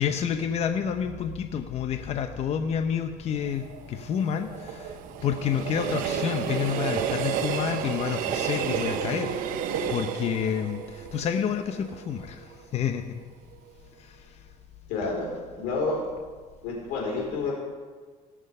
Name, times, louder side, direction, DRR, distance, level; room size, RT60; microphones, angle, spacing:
voice 1, 0.0-9.4 9.9-13.0 14.0-14.4, left 8 dB, 50° left, 7 dB, 0.7 m, -29 dB
Train, 3.5-12.5 12.9-13.0, right 7 dB, 75° right, 0.9 m, -31 dB
voice 2, 14.9-16.0 16.6-17.5, left 3 dB, 90° left, -2 dB, 4.6 m, -29 dB
18.0 x 6.3 x 5.4 m, 1.5 s
cardioid pair, 115°, 14 cm